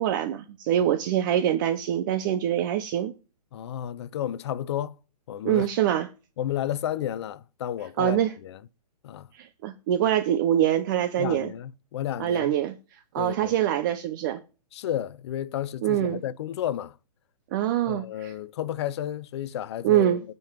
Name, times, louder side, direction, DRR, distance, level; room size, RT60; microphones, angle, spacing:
voice 1, 0.0-3.1 5.4-6.1 8.0-8.3 9.4-11.5 12.2-12.7 13.1-14.4 15.8-16.2 17.5-18.3 19.8-20.2, right 11 dB, 30° right, 0.8 m, -24 dB
voice 2, 3.5-4.9 5.3-5.7 6.4-8.6 9.0-9.3 11.2-12.6 13.2-13.5 14.7-17.0 17.9-20.2, left 11 dB, 40° left, 0.7 m, -32 dB
13.5 x 5.4 x 7.4 m
hypercardioid pair, 155°, 21 cm